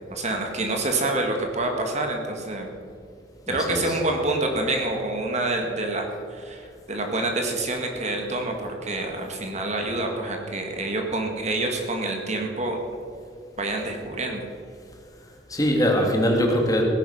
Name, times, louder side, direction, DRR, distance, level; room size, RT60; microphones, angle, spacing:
voice 1, 0.1-2.7 3.5-12.8 13.6-14.4, right 2 dB, 40° right, 2 dB, 1.9 m, -27 dB
voice 2, 3.5-4.0 15.5-16.8, equal, 20° left, 1 dB, 2.1 m, -22 dB
17.0 x 10.0 x 5.7 m, 2.4 s
head